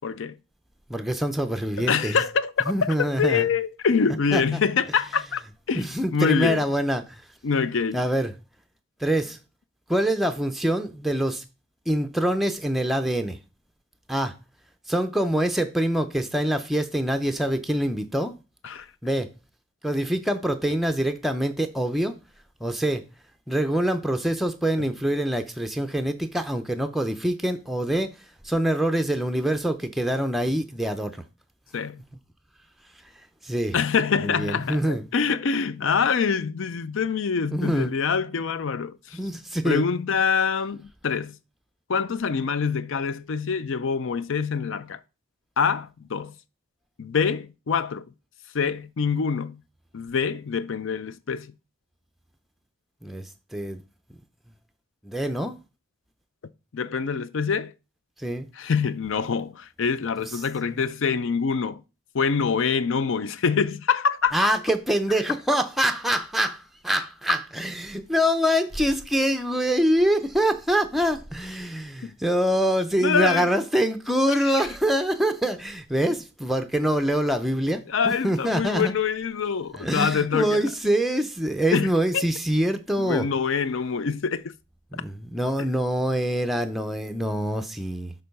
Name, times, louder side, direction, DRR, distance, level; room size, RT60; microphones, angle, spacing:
voice 1, 0.0-0.4 1.8-5.4 5.7-6.7 7.4-8.0 18.6-18.9 24.8-24.9 31.7-32.0 33.7-39.2 39.6-41.4 41.9-45.0 45.6-46.3 47.0-48.1 48.5-49.6 49.9-51.5 56.7-57.7 58.5-61.8 62.1-64.5 72.0-72.1 73.0-73.5 74.3-74.7 77.9-80.6 81.7-81.9 82.1-82.2 83.0-84.5 84.9-85.0, left 6 dB, 60° left, 0.5 m, -25 dB
voice 2, 0.9-2.2 2.7-3.5 4.3-4.6 5.8-7.2 7.9-8.3 9.0-9.4 9.9-11.4 11.9-13.4 14.1-14.3 14.9-18.4 19.0-19.3 19.8-22.2 22.6-23.0 23.5-28.1 28.4-31.2 33.4-33.7 34.2-35.0 37.5-37.9 39.1-39.8 53.0-53.8 55.0-55.6 58.2-58.5 60.2-60.3 64.3-77.8 78.2-78.9 79.8-83.3 84.9-88.1, right 1 dB, ahead, 0.5 m, -25 dB
6.6 x 3.9 x 5.3 m
head